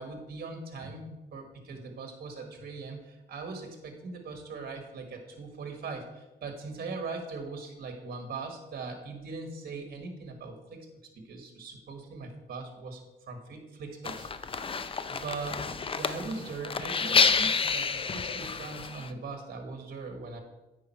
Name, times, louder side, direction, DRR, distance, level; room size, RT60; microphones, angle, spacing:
voice 1, 0.0-10.9 11.1-14.3 15.1-20.4, right 4 dB, 50° right, 5 dB, 1.5 m, -40 dB
sound 1, 14.0-19.1, left 5 dB, 30° left, 0.5 m, -29 dB
8.8 x 5.0 x 4.5 m, 1.0 s
cardioid pair, 90°, 20 cm